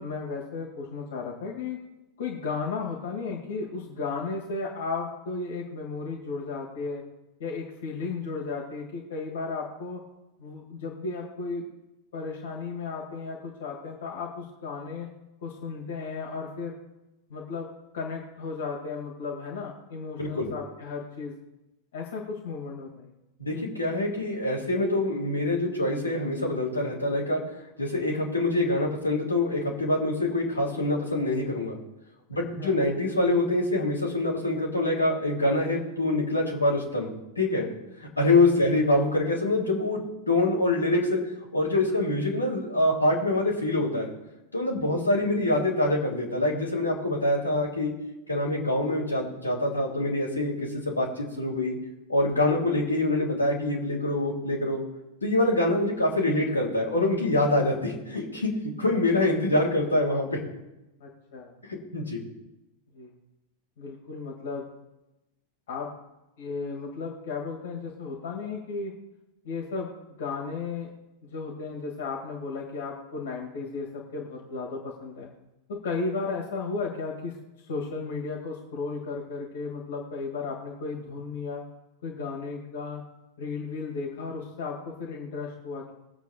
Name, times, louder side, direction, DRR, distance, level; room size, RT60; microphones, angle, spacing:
voice 1, 0.0-1.8 2.2-7.0 7.4-10.0 10.4-11.6 12.1-15.1 15.4-16.8 17.3-21.3 21.9-23.1 32.6-32.7 44.9-45.0 61.0-61.5 62.9-63.1 63.8-64.7 65.7-65.9 66.4-68.9 69.4-69.9 70.2-70.9 71.2-75.3 75.7-77.3 77.6-81.6 82.0-83.0 83.4-85.9, left 4 dB, 60° left, -1 dB, 2.2 m, -34 dB
voice 2, 23.4-27.4 27.8-31.8 32.3-37.7 38.2-40.0 40.3-41.2 41.5-44.1 44.5-47.9 48.3-51.8 52.1-54.8 55.2-60.4 61.9-62.2, left 2 dB, 80° left, -3 dB, 3.2 m, -25 dB
23.0 x 8.2 x 2.5 m, 0.99 s
figure-of-eight pair, 90°, 0 cm